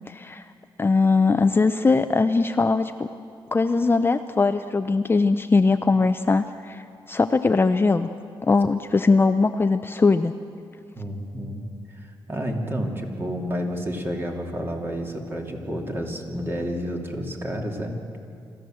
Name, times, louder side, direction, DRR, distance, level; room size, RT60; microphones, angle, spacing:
voice 1, 0.1-0.4 0.8-3.1 3.5-6.8 7.1-8.1 8.4-10.3, left 3 dB, 25° left, 9 dB, 0.6 m, -20 dB
voice 2, 11.0-11.6 11.9-18.2, equal, 25° right, 1 dB, 2.8 m, -30 dB
26.0 x 14.5 x 7.7 m, 2.4 s
cardioid pair, 105°, 9 cm